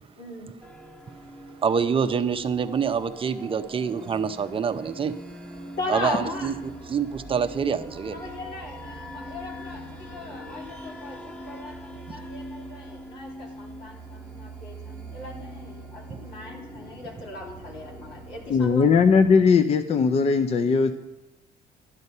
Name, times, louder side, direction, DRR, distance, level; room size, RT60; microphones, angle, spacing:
voice 1, 0.2-0.6 5.8-6.5 8.1-18.9, left 2 dB, 85° left, -2 dB, 3.2 m, -38 dB
sound 1, 0.6-19.4, right 1 dB, 10° left, 1.3 m, -42 dB
voice 2, 1.6-5.2 5.9-6.5 6.8-8.3 12.1-12.2, right 6 dB, 30° right, 9 dB, 0.6 m, -26 dB
voice 3, 18.5-20.9, left 5 dB, 40° left, 9 dB, 0.6 m, -19 dB
12.0 x 8.0 x 5.5 m, 1.0 s
cardioid pair, 110°, 17 cm